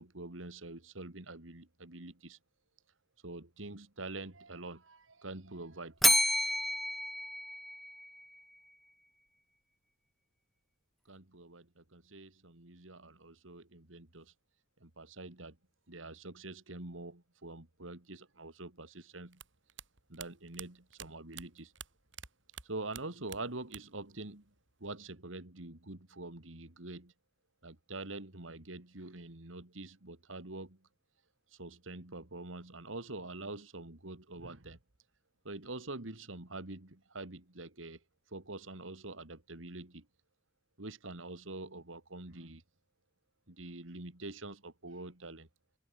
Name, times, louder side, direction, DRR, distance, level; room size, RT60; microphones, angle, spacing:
voice 1, 0.0-2.4 3.2-6.0 11.1-14.3 14.8-15.6 15.9-19.4 20.1-21.7 22.6-24.5 24.8-27.1 27.6-30.9 31.5-34.8 35.4-38.0 38.3-40.1 40.8-42.6 43.5-45.5, right 2 dB, 85° right, 2.6 m, -45 dB
Bell, 6.0-8.2, equal, ahead, 0.8 m, -29 dB
sound 1, 19.3-22.3 22.5-24.1 24.3-25.1, right 9 dB, 65° right, 7.2 m, -49 dB
head